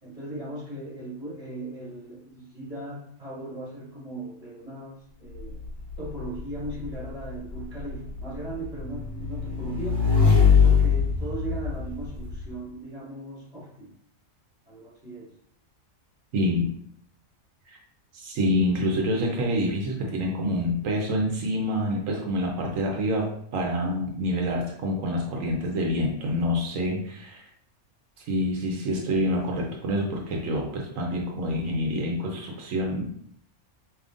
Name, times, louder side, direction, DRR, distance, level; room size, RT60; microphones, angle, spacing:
voice 1, 0.0-5.6 6.0-10.0 10.6-13.9 14.7-15.3, right 2 dB, 30° right, -6 dB, 1.8 m, -38 dB
Motorcycle / Engine, 5.3-12.4, left 6 dB, 40° left, 1.7 m, -23 dB
voice 2, 16.3-16.7 17.7-17.8 18.1-27.5 28.3-33.1, equal, 85° right, 0 dB, 1.1 m, -27 dB
5.0 x 3.0 x 2.4 m, 0.66 s
omnidirectional pair, 1.3 m